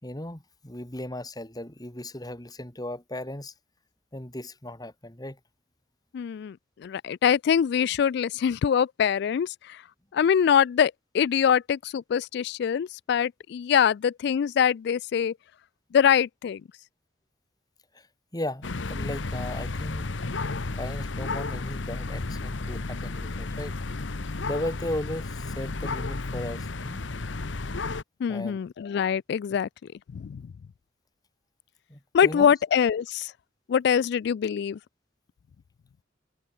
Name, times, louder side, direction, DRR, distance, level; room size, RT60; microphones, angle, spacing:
voice 1, 0.0-3.5 4.1-5.4 17.9-18.1 18.3-20.1 20.7-23.8 24.4-27.0 28.3-28.6 31.9-32.5, left 1 dB, 20° left, 4.0 m, -36 dB
voice 2, 6.1-9.8 10.1-15.3 15.9-16.6 28.2-29.7 30.1-30.5 32.1-33.3 33.7-34.8, left 8 dB, 60° left, 0.3 m, -24 dB
sound 1, 18.6-28.0, left 3 dB, 80° left, 1.0 m, -33 dB
head